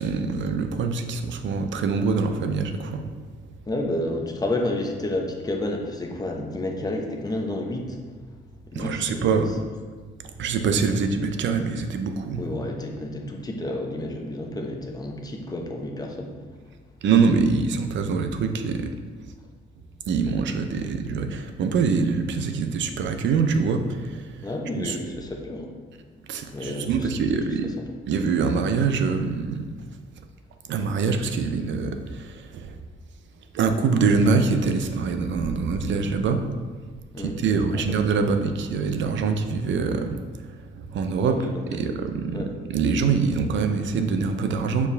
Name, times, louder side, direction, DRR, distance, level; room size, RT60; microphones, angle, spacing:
voice 1, 0.0-3.1 8.7-9.5 10.4-12.4 17.0-18.9 20.1-24.2 24.7-25.0 26.3-27.7 28.1-29.7 30.7-32.7 33.5-36.4 37.2-40.2 40.8-41.4 41.7-42.4 42.7-44.9, right 5 dB, 70° right, 7 dB, 0.7 m, -24 dB
voice 2, 3.7-8.0 8.7-9.4 12.4-16.3 20.3-20.4 24.4-25.7 26.5-27.1 27.8-27.9 37.1-37.8 41.2-41.9 42.3-42.5, left 1 dB, 20° left, 1 dB, 1.0 m, -30 dB
6.8 x 4.7 x 3.4 m, 1.5 s
cardioid pair, 90°, 20 cm